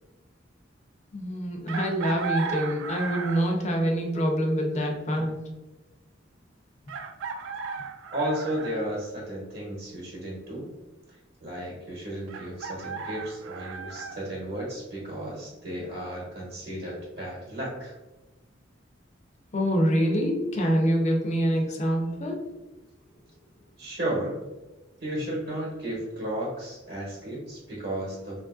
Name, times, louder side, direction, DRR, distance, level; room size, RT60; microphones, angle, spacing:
voice 1, 1.1-5.5 19.5-22.4, equal, 35° left, 2 dB, 0.5 m, -25 dB
Chicken rooster, 1.7-3.6 5.3-5.4 6.9-8.8 12.3-14.2, right 5 dB, 80° right, 0.3 m, -35 dB
voice 2, 8.1-10.7 11.4-17.9 23.8-24.4 25.0-28.4, right 1 dB, 55° right, -6 dB, 0.9 m, -33 dB
2.9 x 2.5 x 2.3 m, 1.1 s
head